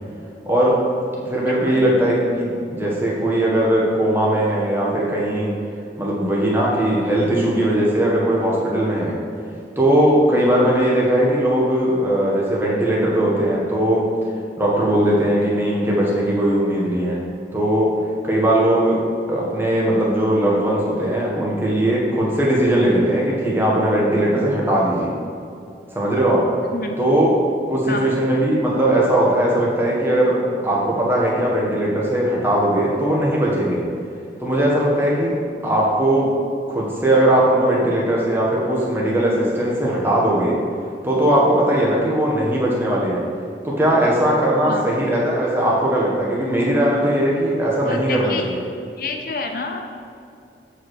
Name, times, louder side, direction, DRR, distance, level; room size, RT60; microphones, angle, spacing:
voice 1, 0.4-0.8 1.2-5.5 6.0-9.1 9.8-14.1 14.6-17.2 17.5-19.0 19.3-25.1 25.9-26.5 27.0-27.3 27.7-33.8 34.4-35.3 35.6-36.3 36.7-40.6 41.0-43.2 43.6-48.6, right 1 dB, 10° right, -4 dB, 1.3 m, -19 dB
voice 2, 1.4-2.1 26.7-27.0 27.9-28.1 42.2-42.3 44.6-44.9 47.8-48.4 49.0-49.8, left 3 dB, 50° left, 4 dB, 0.8 m, -29 dB
8.2 x 4.8 x 4.8 m, 2.5 s
head